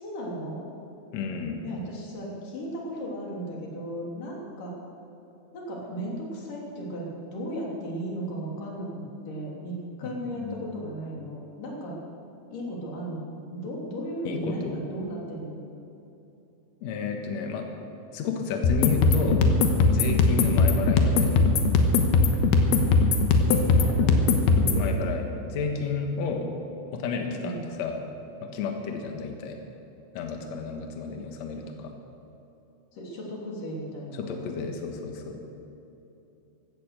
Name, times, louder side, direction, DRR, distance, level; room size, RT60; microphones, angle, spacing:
voice 1, 0.0-0.7 1.6-4.7 5.5-7.1 7.3-11.9 12.5-15.6 20.2-20.5 23.5-24.2 24.6-24.8 27.4-27.6 32.9-34.6, equal, 50° left, -3 dB, 4.2 m, -35 dB
voice 2, 1.1-1.6 10.0-10.6 14.2-14.8 16.8-17.7 18.1-19.4 19.9-21.4 24.8-26.4 26.9-28.0 28.4-29.6 30.1-31.9 34.1-35.4, left 5 dB, 90° left, 3 dB, 1.5 m, -32 dB
sound 1, 18.6-24.8, left 3 dB, 70° left, 2.7 m, -20 dB
15.5 x 14.0 x 6.7 m, 2.9 s
omnidirectional pair, 5.4 m